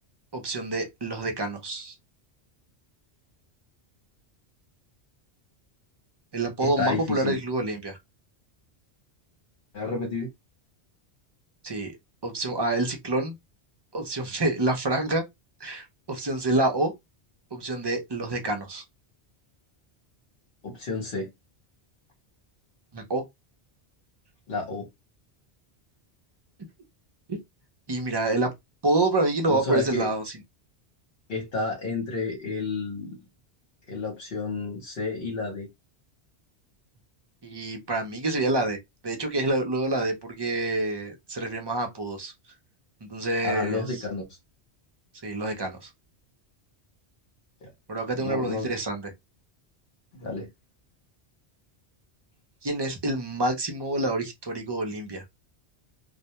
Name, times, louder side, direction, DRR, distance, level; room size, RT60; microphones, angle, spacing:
voice 1, 0.3-2.0 6.3-8.0 11.6-11.9 12.2-13.3 13.9-15.2 15.6-16.9 17.5-18.8 22.9-23.2 27.3-27.4 27.9-28.5 28.8-30.4 37.4-38.8 39.0-42.3 43.0-44.0 45.2-45.9 47.9-49.1 52.6-55.2, right 2 dB, 35° right, 0.4 m, -27 dB
voice 2, 6.6-7.4 9.7-10.3 20.6-21.3 24.5-24.9 29.5-30.1 31.3-33.2 33.9-35.7 43.4-44.2 47.6-47.7 48.2-48.7 50.2-50.5, left 3 dB, 60° left, 1.0 m, -30 dB
2.1 x 2.1 x 2.8 m
omnidirectional pair, 1.1 m